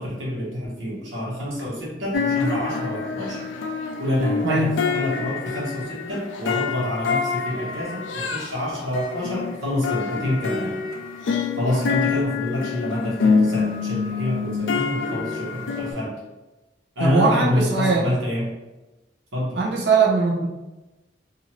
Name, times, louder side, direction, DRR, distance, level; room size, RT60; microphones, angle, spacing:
voice 1, 0.0-3.4 4.0-10.8 11.6-16.2 16.9-18.5 19.3-19.6, left 1 dB, 80° right, -6 dB, 1.2 m, -27 dB
sound 1, 2.1-8.5 8.9-15.9, left 5 dB, 70° left, 0.4 m, -26 dB
voice 2, 17.0-18.0 19.6-20.5, right 3 dB, 55° right, -2 dB, 0.7 m, -20 dB
2.8 x 2.5 x 2.9 m, 1.1 s
head